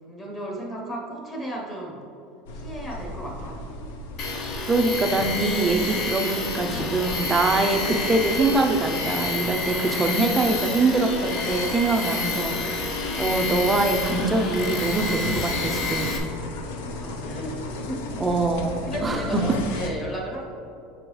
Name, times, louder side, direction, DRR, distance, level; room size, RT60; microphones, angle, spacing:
voice 1, 0.1-2.0 2.5-3.6 16.9-18.0 18.8-20.5, right 1 dB, 15° left, -1 dB, 0.9 m, -34 dB
sound 1, 2.5-19.9, left 1 dB, 85° left, 0.6 m, -35 dB
Tools, 4.2-16.2, left 3 dB, 40° left, 0.6 m, -29 dB
voice 2, 4.7-12.9 13.2-16.1 18.2-19.4, right 3 dB, 15° right, 4 dB, 0.4 m, -24 dB
6.8 x 5.1 x 3.1 m, 2.7 s
cardioid pair, 175°, 0 cm